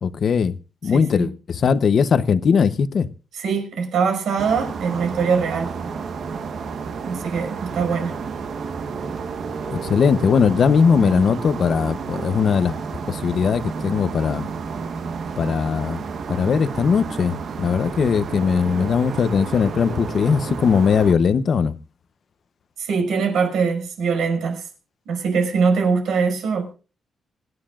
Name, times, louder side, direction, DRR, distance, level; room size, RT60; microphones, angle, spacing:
voice 1, 0.0-0.5 0.8-3.1 9.7-12.7 13.1-14.4 15.4-16.0 16.3-21.7, left 6 dB, 45° left, 0.8 m, -19 dB
voice 2, 0.9-1.3 3.3-5.8 6.3-6.4 7.0-8.2 11.0-11.2 22.8-24.7 25.1-26.8, right 5 dB, 80° right, 5.4 m, -22 dB
sound 1, 4.4-21.1, right 5 dB, 55° right, 1.2 m, -31 dB
26.0 x 9.7 x 2.5 m
wide cardioid pair, 160°, 0 cm